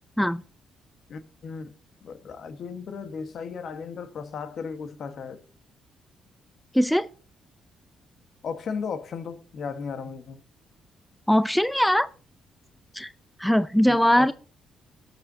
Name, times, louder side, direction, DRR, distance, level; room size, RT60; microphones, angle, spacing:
voice 1, 1.1-1.7 2.0-5.4 8.4-10.4 13.9-14.3, left 5 dB, 60° left, 1.4 m, -35 dB
voice 2, 6.7-7.1 11.3-12.1 12.9-13.1 13.4-14.3, equal, 5° left, 0.4 m, -21 dB
18.5 x 7.7 x 2.8 m
cardioid pair, 90°, 0 cm